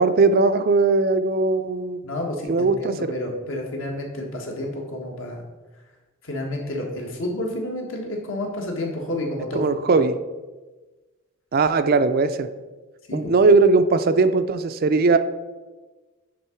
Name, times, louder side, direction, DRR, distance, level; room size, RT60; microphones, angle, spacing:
voice 1, 0.0-2.0 2.5-3.0 9.6-10.2 11.5-12.5 13.1-15.2, right 3 dB, 45° right, 10 dB, 0.4 m, -19 dB
voice 2, 2.0-5.4 6.2-9.6 9.9-10.1 13.1-13.3, left 1 dB, 65° left, 0 dB, 1.6 m, -30 dB
10.0 x 3.7 x 4.4 m, 1.2 s
head